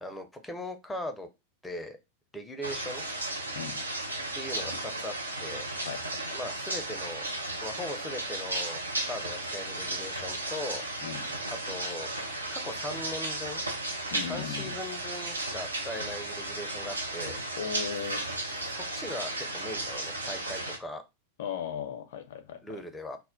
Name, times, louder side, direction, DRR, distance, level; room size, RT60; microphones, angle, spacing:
voice 1, 0.0-1.3 1.6-2.0 2.3-3.0 4.3-5.7 6.3-7.2 7.6-10.9 11.5-12.1 12.5-13.6 14.2-17.4 18.0-18.2 18.6-21.0 22.6-23.2, left 1 dB, 5° left, 0.5 m, -39 dB
sound 1, 2.6-20.8, right 2 dB, 80° right, 0.5 m, -35 dB
voice 2, 5.8-6.3 11.0-11.3 14.1-14.7 17.6-18.3 21.4-22.8, left 8 dB, 55° left, 0.5 m, -37 dB
2.2 x 2.1 x 3.6 m
figure-of-eight pair, 90°, 0 cm